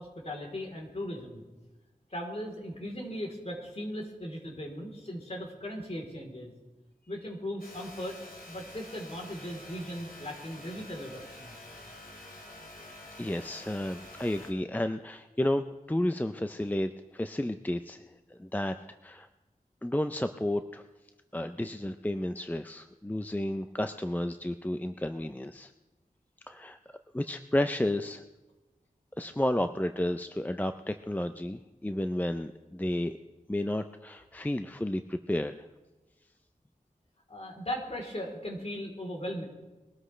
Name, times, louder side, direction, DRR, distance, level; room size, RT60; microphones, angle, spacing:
voice 1, 0.0-1.4 2.1-6.5 7.1-8.2 8.5-11.5 37.3-39.5, equal, 45° left, 0 dB, 3.5 m, -38 dB
sound 1, 7.6-14.5, left 1 dB, 80° left, 2.6 m, -48 dB
voice 2, 13.2-18.0 18.3-18.7 19.0-19.3 19.8-20.8 21.3-25.7 26.5-26.8 27.1-28.2 29.2-33.1 33.5-35.7, left 1 dB, 10° left, 9 dB, 0.5 m, -32 dB
22.5 x 13.0 x 3.3 m, 1.1 s
wide cardioid pair, 50°, 15 cm